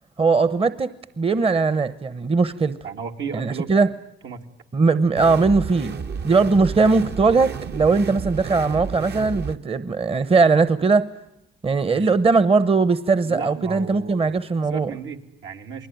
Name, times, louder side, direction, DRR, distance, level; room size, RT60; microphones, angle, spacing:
voice 1, 0.2-0.9 1.2-2.7 3.3-3.9 4.7-11.1 11.6-14.9, right 4 dB, 30° right, 1.0 m, -19 dB
voice 2, 2.8-3.7 4.2-4.4 11.8-12.1 13.2-14.3 14.7-15.9, right 6 dB, 75° right, 2.9 m, -34 dB
sound 1, 5.2-9.5, right 6 dB, 55° right, 1.4 m, -32 dB
28.5 x 20.5 x 9.3 m
cardioid pair, 90°, 20 cm